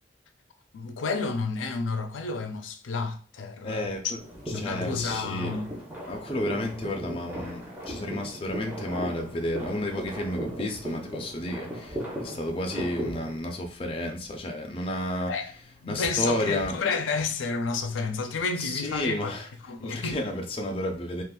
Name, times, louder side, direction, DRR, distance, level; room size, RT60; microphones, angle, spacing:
voice 1, 0.7-4.1 4.5-5.7 15.3-15.5 15.8-19.3 19.6-20.2, left 4 dB, 90° left, 0.4 m, -30 dB
voice 2, 3.6-4.2 4.6-5.5 6.1-15.3 15.9-16.8 18.6-19.5 19.8-21.2, left 1 dB, 30° left, 0.4 m, -31 dB
sound 1, 3.8-20.2, equal, 30° right, 1.2 m, -51 dB
sound 2, 4.2-13.4, equal, 10° right, 0.6 m, -37 dB
2.4 x 2.4 x 3.6 m
head